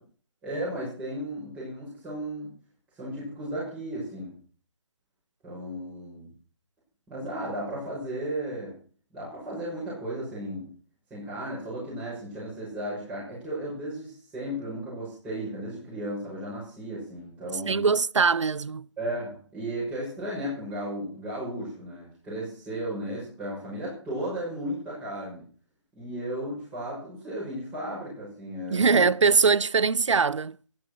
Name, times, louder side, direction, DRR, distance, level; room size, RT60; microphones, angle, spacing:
voice 1, 0.4-2.5 3.0-4.4 5.4-6.3 7.1-8.8 9.1-10.7 11.1-17.9 19.0-25.4 26.0-29.1, right 1 dB, 5° right, 6.4 m, -35 dB
voice 2, 17.7-18.9 28.7-30.6, right 5 dB, 80° right, 0.7 m, -22 dB
13.5 x 11.0 x 6.4 m
hypercardioid pair, 165°, 15 cm